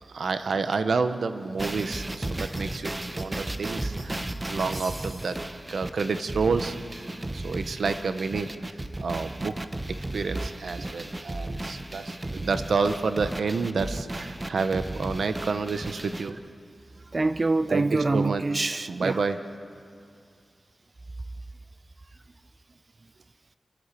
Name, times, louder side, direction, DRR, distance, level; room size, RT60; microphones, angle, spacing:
voice 1, 0.1-5.4 5.7-6.8 7.3-8.5 9.0-9.5 9.9-16.4 17.7-18.4 18.9-19.4, right 4 dB, 85° right, 10 dB, 0.9 m, -29 dB
sound 1, 1.6-16.3, right 1 dB, 25° right, 1.0 m, -34 dB
voice 2, 17.1-19.2, right 3 dB, 45° right, 13 dB, 0.5 m, -26 dB
28.0 x 11.5 x 8.3 m, 2.4 s
cardioid pair, 55°, 0 cm